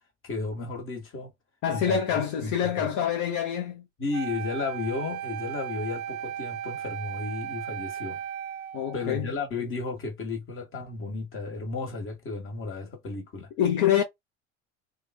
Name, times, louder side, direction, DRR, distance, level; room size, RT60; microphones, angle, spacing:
voice 1, 0.2-1.3 1.7-2.9 4.0-8.2 8.9-13.5, left 4 dB, 35° left, 1.4 m, -33 dB
voice 2, 1.6-3.8 8.7-9.3 13.6-14.0, left 9 dB, 55° left, 0.7 m, -26 dB
Wind instrument woodwind instrument, 4.1-9.2, right 10 dB, 75° right, 0.5 m, -36 dB
2.9 x 2.5 x 2.2 m
hypercardioid pair, 75°, 35 cm